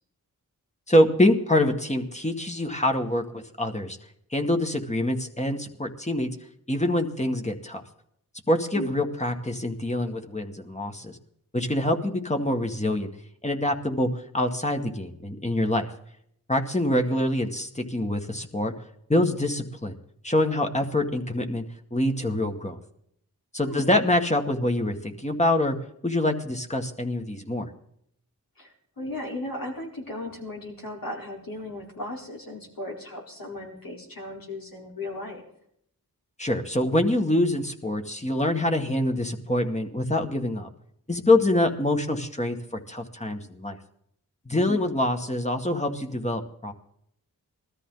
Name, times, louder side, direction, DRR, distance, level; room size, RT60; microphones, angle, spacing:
voice 1, 0.9-4.0 4.3-6.3 6.7-7.8 8.5-11.2 11.5-13.1 13.4-15.9 16.5-18.7 19.1-20.0 20.2-21.6 21.9-22.8 23.5-25.8 26.0-27.7 36.4-40.7 41.1-43.8 44.5-46.7, left 1 dB, 20° left, 4 dB, 1.9 m, -25 dB
voice 2, 16.9-17.3 23.6-23.9 28.6-35.4 44.7-44.9, left 1 dB, 70° left, -1 dB, 4.2 m, -36 dB
20.0 x 13.5 x 4.0 m, 0.70 s
cardioid pair, 50°, 36 cm